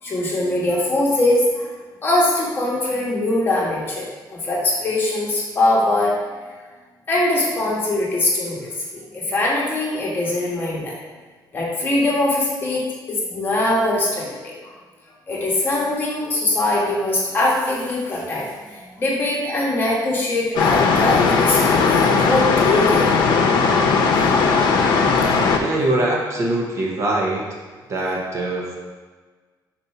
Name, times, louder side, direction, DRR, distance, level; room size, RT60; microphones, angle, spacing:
voice 1, 0.0-1.7 2.0-4.1 4.3-6.1 7.1-10.9 11.5-12.8 13.1-14.5 15.3-23.1 24.1-24.6, left 2 dB, 30° left, -4 dB, 1.3 m, -22 dB
sound 1, 20.6-25.6, left 4 dB, 90° left, 0.7 m, -17 dB
voice 2, 25.6-27.5 27.9-28.7, right 1 dB, 40° right, -2 dB, 1.0 m, -22 dB
4.4 x 4.1 x 5.5 m, 1.4 s
cardioid pair, 160°, 8 cm